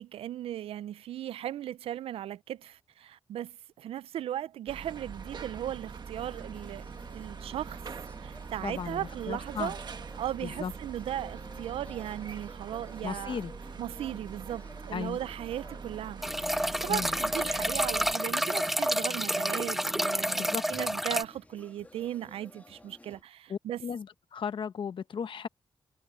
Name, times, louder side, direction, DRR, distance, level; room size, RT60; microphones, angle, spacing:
voice 1, 0.0-6.9 7.1-7.8 8.2-9.8 10.2-13.4 13.8-23.8, right 11 dB, 85° right, 0.4 m, -37 dB
sound 1, 4.7-18.2, right 5 dB, 50° right, 1.5 m, -43 dB
sound 2, 6.2-23.2, left 2 dB, 15° left, 1.6 m, -53 dB
voice 2, 8.6-9.7 10.4-10.7 13.0-13.5 14.9-15.2 16.9-17.1 20.4-20.6 23.5-24.1 24.3-25.5, left 7 dB, 60° left, 1.0 m, -35 dB
sound 3, 16.2-21.2, equal, 5° right, 0.5 m, -29 dB
cardioid pair, 95°, 9 cm